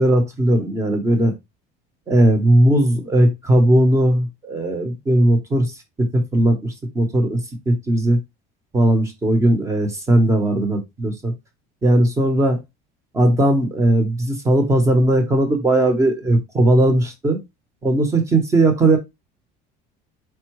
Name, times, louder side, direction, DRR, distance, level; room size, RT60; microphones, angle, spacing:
voice 1, 0.0-1.3 2.1-5.7 6.0-7.4 7.7-8.2 8.7-11.3 11.8-12.6 13.1-17.4 17.8-19.0, right 1 dB, 15° right, 6 dB, 0.9 m, -17 dB
4.6 x 2.2 x 4.6 m, 0.20 s
cardioid pair, 175°, 21 cm